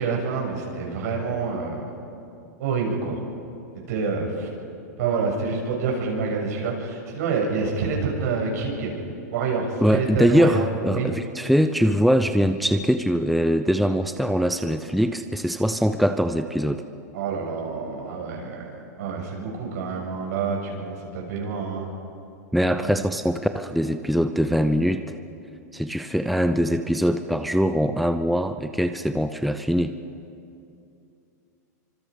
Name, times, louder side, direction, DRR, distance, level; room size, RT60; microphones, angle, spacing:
voice 1, 0.0-1.9 2.6-3.2 3.9-4.5 5.0-8.9 9.3-10.6 10.9-11.1 17.1-18.7 19.0-21.9 22.8-22.9, right 4 dB, 70° right, 0 dB, 6.7 m, -27 dB
voice 2, 9.8-16.8 22.5-25.0 25.7-29.9, equal, ahead, 8 dB, 0.6 m, -22 dB
26.5 x 25.5 x 5.2 m, 2.6 s
hypercardioid pair, 140°, 9 cm